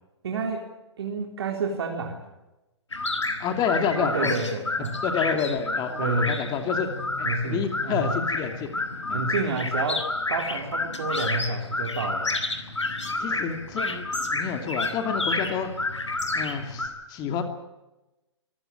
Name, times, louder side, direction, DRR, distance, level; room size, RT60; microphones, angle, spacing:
voice 1, 0.2-0.7 1.0-2.2 3.9-5.0 6.0-6.5 7.2-8.1 9.1-12.4, right 3 dB, 60° right, 2 dB, 3.7 m, -29 dB
sound 1, 2.9-16.9, left 2 dB, 80° left, 3.8 m, -30 dB
voice 2, 3.4-4.3 5.0-6.9 7.2-8.8 9.1-9.2 13.2-14.1 14.3-15.7 16.3-17.4, left 6 dB, 25° left, 6 dB, 2.8 m, -29 dB
25.5 x 15.5 x 8.9 m, 1.0 s
figure-of-eight pair, 120°, 15 cm